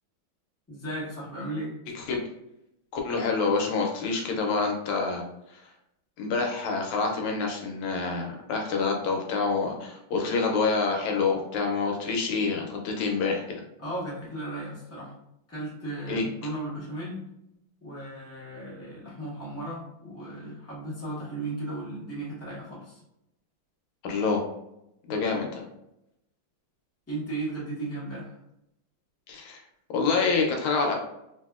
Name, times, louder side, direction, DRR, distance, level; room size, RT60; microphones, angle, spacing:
voice 1, 0.7-1.8 13.8-15.1 15.5-17.2 17.8-23.0 27.1-28.4, right 2 dB, 10° left, -8 dB, 0.7 m, -35 dB
voice 2, 2.9-5.2 5.5-5.7 6.2-13.6 16.1-16.2 24.0-24.4 25.1-25.6 29.3-29.6 29.9-30.9, left 4 dB, 80° left, 1 dB, 1.4 m, -27 dB
3.3 x 2.7 x 2.3 m, 0.84 s
omnidirectional pair, 2.4 m